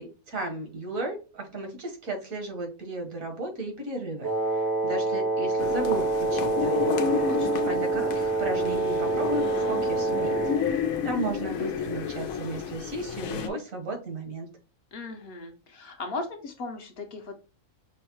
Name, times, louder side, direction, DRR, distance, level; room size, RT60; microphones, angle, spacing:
voice 1, 0.0-6.9 7.6-10.4 10.6-10.8 11.0-14.5, right 2 dB, 75° right, 3 dB, 1.5 m, -34 dB
Wind instrument woodwind instrument, 4.2-10.7, right 3 dB, 25° right, 0.4 m, -27 dB
sound 1, 5.6-13.5, left 7 dB, 85° left, 1.0 m, -31 dB
voice 2, 7.3-7.7 14.9-17.3, left 3 dB, 55° left, 5 dB, 0.8 m, -37 dB
6.1 x 2.0 x 2.8 m, 0.32 s
omnidirectional pair, 1.4 m